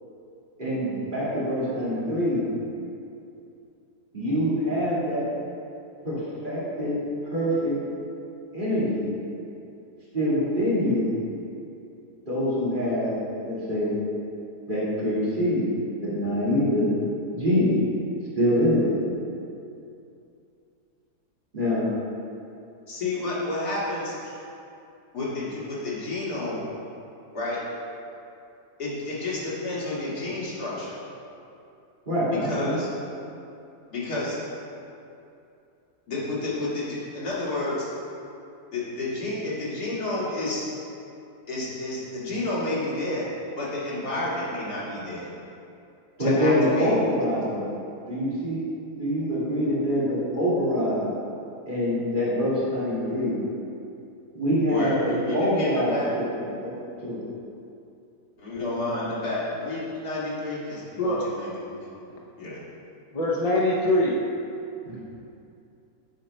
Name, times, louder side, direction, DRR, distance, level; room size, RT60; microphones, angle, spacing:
voice 1, 0.6-2.5 4.1-5.2 6.0-7.0 7.3-7.7 8.5-9.1 10.1-11.1 12.3-13.1 13.5-13.9 14.7-15.7 16.0-16.9 17.3-17.7 18.4-18.9 21.5-21.8 32.1-32.8 46.2-47.7 48.1-48.7 49.0-51.1 51.7-53.4 54.3-56.7 57.0-57.2 64.8-65.0, equal, 30° right, -9 dB, 2.2 m, -25 dB
voice 2, 22.9-24.4 25.1-26.6 27.3-27.6 28.8-31.0 32.3-32.9 33.9-34.4 36.1-37.9 38.7-40.6 41.5-45.3 46.2-46.9 54.7-56.1 58.4-61.9 62.4-62.6, left 2 dB, 85° left, -8 dB, 2.4 m, -30 dB
voice 3, 61.0-61.3 63.1-64.2 64.9-65.0, left 1 dB, 50° left, -2 dB, 0.4 m, -23 dB
8.4 x 4.4 x 5.3 m, 2.6 s
omnidirectional pair, 1.6 m